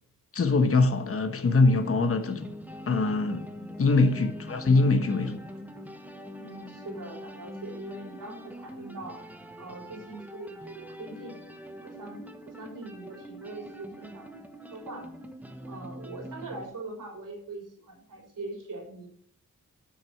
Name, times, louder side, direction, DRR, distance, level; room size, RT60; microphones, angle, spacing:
voice 1, 0.3-2.5 2.9-3.5 3.8-5.4, left 3 dB, 45° left, 1.2 m, -23 dB
sound 1, 1.5-16.6, equal, 5° right, 1.2 m, -43 dB
voice 2, 3.5-3.8 6.4-9.2 9.6-11.4 11.8-12.2 12.5-14.3 14.7-15.1 15.6-19.1, right 2 dB, 75° right, 4.0 m, -42 dB
9.9 x 6.2 x 5.9 m
wide cardioid pair, 100°, 32 cm